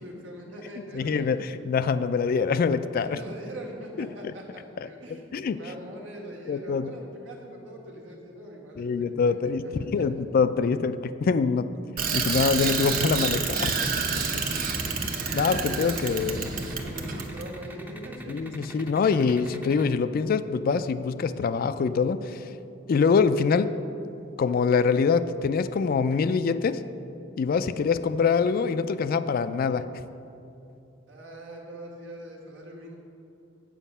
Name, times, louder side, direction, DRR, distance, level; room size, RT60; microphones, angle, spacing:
voice 1, 0.0-1.6 3.0-10.0 14.7-14.9 15.4-16.0 16.2-16.3 16.7-18.5 31.1-33.0, right 1 dB, 85° right, -1 dB, 1.7 m, -42 dB
voice 2, 0.9-3.2 4.0-4.1 4.8-4.9 5.3-5.6 6.5-6.9 8.8-11.7 12.1-13.9 14.5-14.7 15.3-16.5 18.3-22.5 22.9-23.7 24.4-26.8 27.4-30.0, left 5 dB, 50° left, 13 dB, 0.3 m, -24 dB
Bicycle, 12.0-17.5, right 5 dB, 50° right, 0.8 m, -28 dB
sound 1, 14.5-19.8, right 1 dB, 10° right, 0.6 m, -43 dB
7.9 x 7.3 x 5.5 m, 2.7 s
head